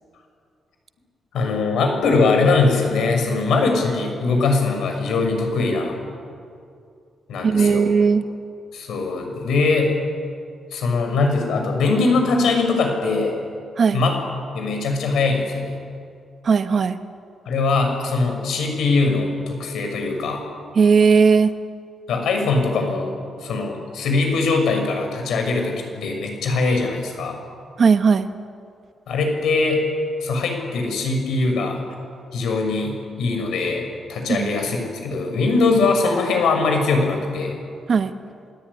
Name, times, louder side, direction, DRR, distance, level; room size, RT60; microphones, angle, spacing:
voice 1, 1.3-5.9 7.3-7.9 8.7-9.9 10.7-13.4 13.9-14.2 14.5-15.7 17.4-20.4 22.1-27.4 29.1-29.8 30.2-31.8 32.3-37.6, left 3 dB, 85° left, 4 dB, 6.5 m, -21 dB
voice 2, 7.4-8.2 13.8-14.0 16.4-17.0 20.7-21.5 27.8-28.3 34.3-34.5 37.9-38.1, right 5 dB, 40° right, 9 dB, 1.2 m, -17 dB
27.5 x 21.5 x 9.9 m, 2.4 s
wide cardioid pair, 170°, 0 cm